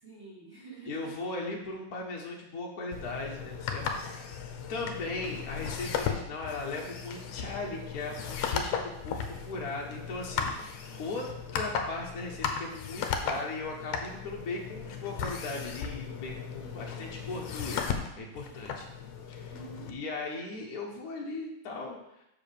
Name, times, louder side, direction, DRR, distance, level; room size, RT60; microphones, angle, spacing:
voice 1, 0.0-1.1 3.8-4.1 10.4-11.2 16.6-17.2 18.4-18.7 19.5-20.0, right 4 dB, 10° right, -5 dB, 1.2 m, -50 dB
voice 2, 0.9-4.2 4.7-17.8 18.2-18.9 19.3-19.5 19.9-22.2, left 3 dB, 55° left, -1 dB, 1.0 m, -38 dB
sound 1, 2.9-19.9, left 6 dB, 70° left, 1.6 m, -36 dB
6.1 x 4.9 x 6.7 m, 0.85 s
omnidirectional pair, 3.3 m